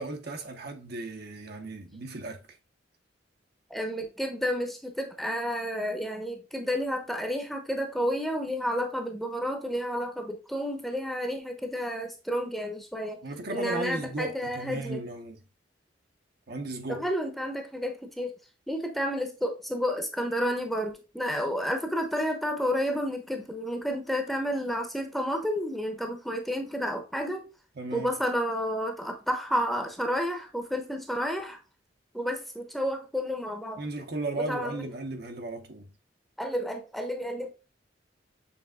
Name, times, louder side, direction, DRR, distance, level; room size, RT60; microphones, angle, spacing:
voice 1, 0.0-2.5 13.2-15.4 16.5-17.0 27.8-28.2 33.8-35.9, right 2 dB, 55° right, 0.9 m, -35 dB
voice 2, 3.7-13.2 13.5-15.0 16.9-18.4 18.7-27.4 27.9-31.6 32.1-33.8 34.4-34.8 36.4-37.5, equal, ahead, 0.8 m, -31 dB
6.9 x 3.4 x 2.3 m
head